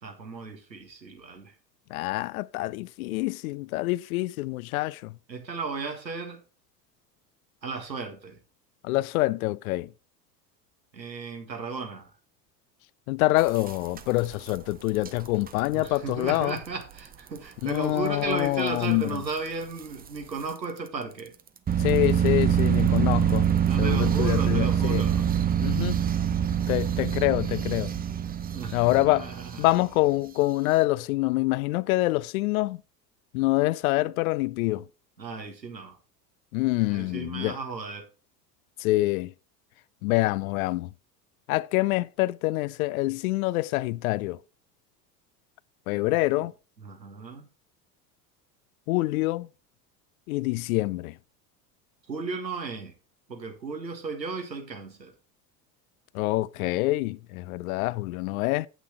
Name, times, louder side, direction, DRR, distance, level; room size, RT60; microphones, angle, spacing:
voice 1, 0.0-1.6 5.3-6.4 7.6-8.4 10.9-12.1 15.7-21.3 23.6-25.3 28.5-29.6 35.2-36.0 36.9-38.1 46.0-46.2 46.8-47.5 52.1-52.9 53.3-55.1, right 4 dB, 90° right, 1.8 m, -35 dB
voice 2, 1.9-5.1 8.8-9.9 13.1-16.6 17.6-19.2 21.8-23.5 23.8-25.1 25.6-26.0 26.7-27.9 28.7-29.3 29.6-32.8 33.3-34.8 36.5-37.6 38.8-39.3 40.0-40.9 41.5-44.4 45.9-46.5 48.9-49.5 50.3-51.2 56.1-58.7, left 19 dB, 60° left, 0.5 m, -26 dB
sound 1, 13.4-14.5 14.9-15.1 15.5-15.7 16.0-16.1 16.3-16.4 17.0-17.1 17.9-18.0 18.4-18.5 19.8-19.9 20.5-20.6 21.7-30.0, right 9 dB, 20° right, 0.6 m, -25 dB
8.4 x 6.0 x 4.8 m
figure-of-eight pair, 75°, 50 cm